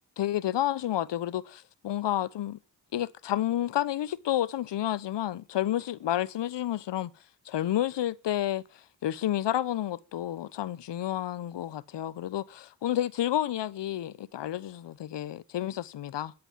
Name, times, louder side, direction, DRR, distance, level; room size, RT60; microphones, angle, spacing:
voice 1, 0.2-2.6 2.9-7.1 7.4-16.3, left 12 dB, 75° left, 1.0 m, -30 dB
13.0 x 12.5 x 7.4 m
cardioid pair, 50°, 43 cm